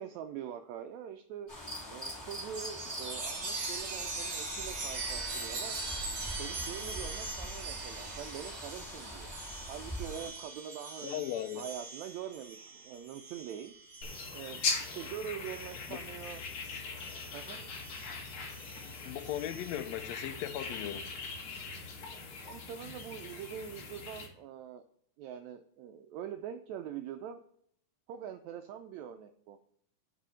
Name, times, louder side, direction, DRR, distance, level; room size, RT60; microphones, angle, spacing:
voice 1, 0.0-1.5 1.9-5.8 6.4-9.3 9.7-13.7 14.3-14.6 15.0-16.4 17.3-17.6 22.4-24.8 25.2-27.4 28.1-29.6, right 9 dB, 90° right, 7 dB, 1.6 m, -44 dB
sound 1, 1.5-10.3, equal, 10° left, 2.7 m, -43 dB
Chime, 2.5-16.5 17.0-19.8, right 3 dB, 50° right, 2.0 m, -42 dB
voice 2, 11.0-11.6 15.9-16.0 19.0-21.1, left 12 dB, 85° left, 10 dB, 1.5 m, -37 dB
sound 2, 14.0-24.3, left 4 dB, 55° left, 1.7 m, -40 dB
6.1 x 5.0 x 5.5 m, 0.66 s
omnidirectional pair, 3.7 m